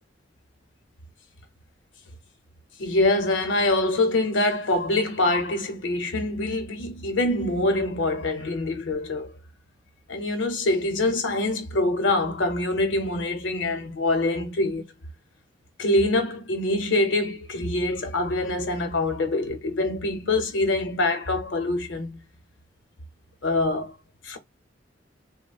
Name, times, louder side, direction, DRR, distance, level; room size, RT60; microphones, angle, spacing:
voice 1, 2.8-9.3 10.1-14.9 15.8-22.2 23.4-23.9 24.2-24.4, left 2 dB, 90° left, 0.7 m, -25 dB
3.2 x 2.1 x 2.2 m
head